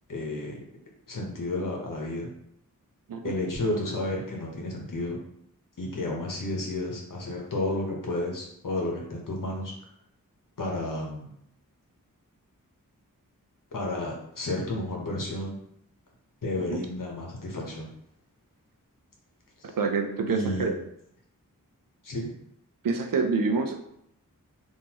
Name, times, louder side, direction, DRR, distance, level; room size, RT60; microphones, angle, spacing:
voice 1, 0.1-0.6 1.1-2.3 3.2-5.2 5.8-9.7 10.6-11.3 13.7-15.6 16.4-17.9 19.6-19.7 20.3-20.7 22.0-22.3, left 1 dB, 65° left, -1 dB, 1.0 m, -31 dB
voice 2, 19.8-20.7 22.8-23.8, right 4 dB, 70° right, 5 dB, 0.6 m, -27 dB
3.8 x 2.6 x 2.9 m, 0.74 s
cardioid pair, 45°, 35 cm